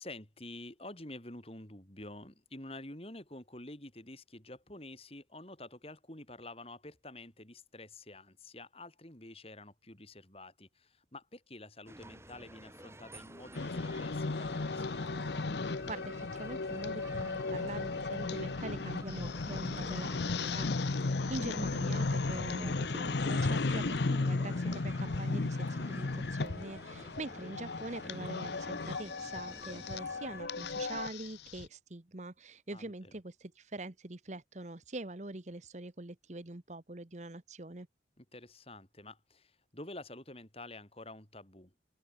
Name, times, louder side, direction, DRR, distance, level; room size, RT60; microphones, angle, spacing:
voice 1, 0.0-14.9 21.0-21.3 29.6-29.9 32.7-33.2 38.2-41.7, left 2 dB, 30° left, 3.6 m, -49 dB
sound 1, 11.9-30.5, right 1 dB, 15° right, 5.8 m, -52 dB
sound 2, 13.5-31.7, left 3 dB, 70° left, 0.8 m, -35 dB
voice 2, 15.6-37.9, right 2 dB, 40° right, 1.1 m, -44 dB
open air
head